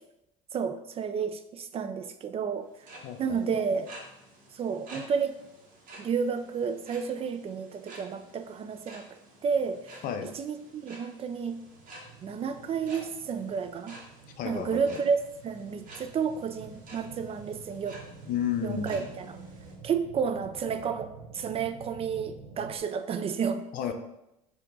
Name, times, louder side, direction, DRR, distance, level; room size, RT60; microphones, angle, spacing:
voice 1, 0.5-2.7 3.2-3.9 4.5-5.3 6.0-9.0 9.4-10.0 10.3-11.6 12.2-14.0 14.4-15.2 15.4-18.0 18.6-19.4 19.8-23.6, right 6 dB, 35° right, 9 dB, 0.4 m, -31 dB
sound 1, 2.6-19.8, right 2 dB, 55° right, 1.5 m, -51 dB
voice 2, 3.0-3.9 10.0-10.3 14.4-15.0 18.2-19.1 23.7-23.9, left 7 dB, 55° left, 7 dB, 0.6 m, -33 dB
sound 2, 11.3-22.8, right 4 dB, 75° right, 0.8 m, -49 dB
4.4 x 2.8 x 3.8 m, 0.88 s
supercardioid pair, 80°, 17 cm